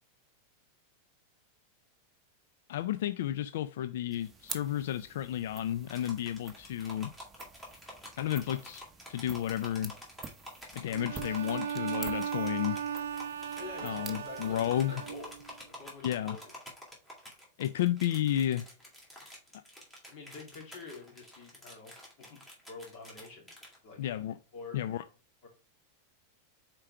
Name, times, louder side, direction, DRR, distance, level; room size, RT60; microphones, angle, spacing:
voice 1, 2.7-7.1 8.2-8.8 9.1-9.9 10.7-12.8 13.8-15.0 16.0-16.4 17.6-18.7 24.0-24.4 24.7-25.0, left 11 dB, 75° left, 0.3 m, -32 dB
sound 1, 4.1-15.8, right 4 dB, 15° right, 0.9 m, -49 dB
sound 2, 5.9-23.8, equal, 10° left, 2.4 m, -48 dB
Bowed string instrument, 10.9-15.5, right 8 dB, 90° right, 0.5 m, -37 dB
voice 2, 13.6-15.3 15.8-16.5 20.1-23.5 23.8-24.0 24.5-24.8 25.4-25.5, left 4 dB, 50° left, 2.8 m, -47 dB
5.0 x 4.4 x 4.7 m
supercardioid pair, 140°, 0 cm